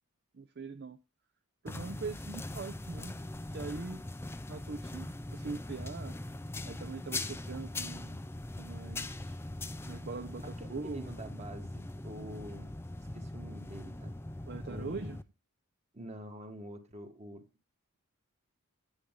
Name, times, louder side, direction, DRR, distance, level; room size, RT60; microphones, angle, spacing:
voice 1, 0.3-1.0 1.6-3.1 3.5-4.0 4.5-6.2 6.7-8.2 8.6-9.4 9.8-10.4 10.7-11.0 14.5-15.2, right 4 dB, 45° right, 10 dB, 0.6 m, -42 dB
sound 1, 1.7-15.2, left 2 dB, 10° left, 0.5 m, -41 dB
voice 2, 10.4-12.7 13.1-14.2 14.6-15.1 15.9-17.4, equal, 30° right, 6 dB, 1.7 m, -46 dB
9.8 x 8.8 x 3.7 m, 0.28 s
head